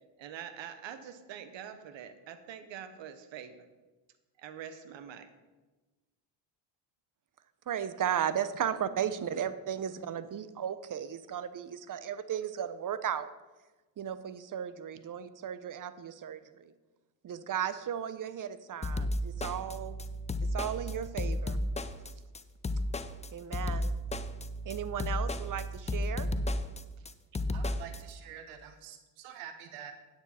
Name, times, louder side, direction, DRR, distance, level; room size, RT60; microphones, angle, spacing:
voice 1, 0.2-3.6 4.4-5.3 27.0-27.1, right 8 dB, 65° right, 10 dB, 1.2 m, -45 dB
voice 2, 7.7-13.3 14.0-16.7 17.2-20.0 20.5-21.6 23.3-23.9 24.6-26.3, right 9 dB, 40° right, 14 dB, 0.7 m, -35 dB
sound 1, 18.8-28.0, left 1 dB, 15° left, 0.5 m, -33 dB
voice 3, 27.5-29.9, right 9 dB, 80° right, 8 dB, 1.0 m, -47 dB
9.4 x 8.9 x 4.3 m, 1.2 s
supercardioid pair, 70°, 49 cm